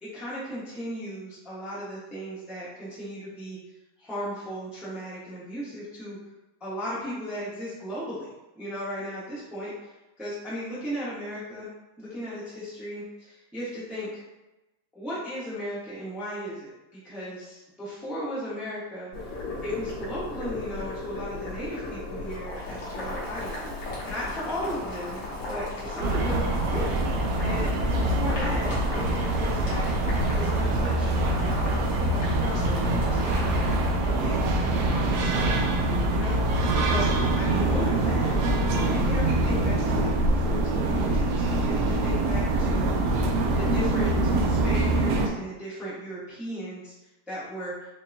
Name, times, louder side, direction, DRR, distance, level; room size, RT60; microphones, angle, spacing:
voice 1, 0.0-3.6 4.0-6.2 6.6-8.3 8.5-9.9 10.2-11.7 12.0-14.2 14.9-19.1 19.6-25.2 25.5-29.9 30.3-35.7 36.1-38.4 38.9-43.0 43.6-46.9 47.3-47.7, equal, ahead, -9 dB, 0.8 m, -36 dB
Boiling, 19.1-33.9, left 2 dB, 90° left, 1.8 m, -36 dB
sound 1, 26.0-45.3, right 2 dB, 75° right, 0.9 m, -24 dB
5.4 x 2.2 x 2.6 m, 1.0 s
omnidirectional pair, 2.0 m